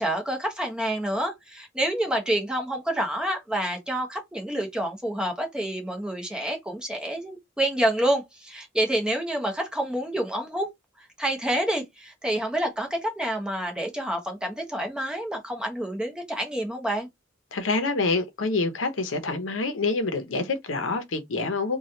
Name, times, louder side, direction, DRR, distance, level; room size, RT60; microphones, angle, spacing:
voice 1, 0.0-10.7 11.0-17.1, right 1 dB, 5° right, 0.8 m, -28 dB
voice 2, 17.5-21.8, left 3 dB, 85° left, 0.7 m, -27 dB
3.1 x 2.3 x 2.7 m
head